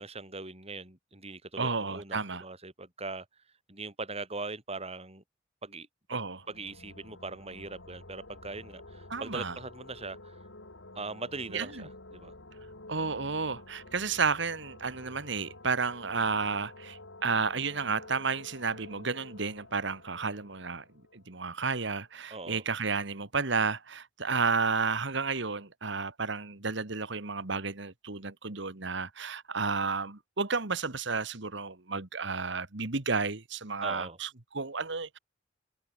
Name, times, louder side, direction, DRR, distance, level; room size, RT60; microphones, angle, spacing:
voice 1, 0.0-3.3 3.7-5.2 5.6-5.9 6.5-10.4 10.9-12.3 22.3-22.6 33.8-34.2, right 3 dB, 35° right, 7.7 m, -40 dB
voice 2, 1.6-2.4 6.1-6.4 9.1-9.5 11.5-11.9 12.9-20.8 21.1-35.2, right 4 dB, 65° right, 1.9 m, -32 dB
sound 1, 6.3-21.8, left 2 dB, 85° left, 4.9 m, -50 dB
head